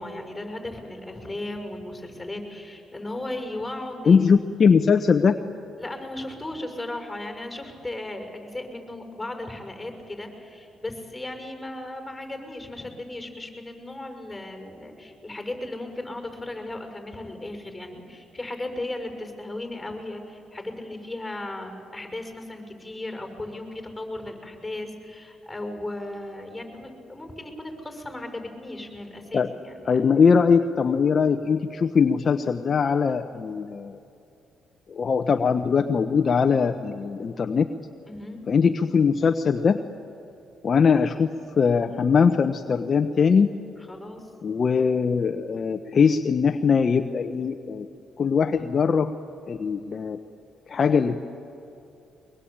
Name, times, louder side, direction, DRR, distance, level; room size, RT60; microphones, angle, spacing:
voice 1, 0.0-4.2 5.8-30.0 38.0-38.4 43.9-44.3, left 1 dB, 10° left, 4 dB, 6.4 m, -36 dB
voice 2, 4.1-5.4 29.3-29.5 29.9-34.0 34.9-37.7 38.5-39.8 40.6-43.5 44.4-47.9 48.2-49.1 49.5-50.2 50.7-51.3, left 6 dB, 45° left, 6 dB, 0.9 m, -21 dB
23.5 x 22.0 x 8.8 m, 2.8 s
cardioid pair, 90°, 0 cm